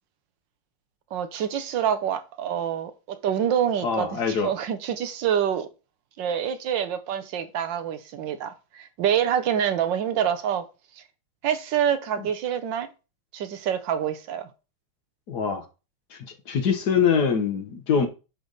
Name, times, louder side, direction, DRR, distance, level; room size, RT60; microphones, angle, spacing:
voice 1, 1.1-5.7 6.2-10.6 11.4-12.9 13.3-14.5, right 9 dB, 65° right, 1.4 m, -26 dB
voice 2, 3.8-4.5 12.2-12.3 15.3-15.7 16.1-18.1, left 6 dB, 55° left, 1.5 m, -24 dB
10.0 x 3.4 x 4.0 m
omnidirectional pair, 2.3 m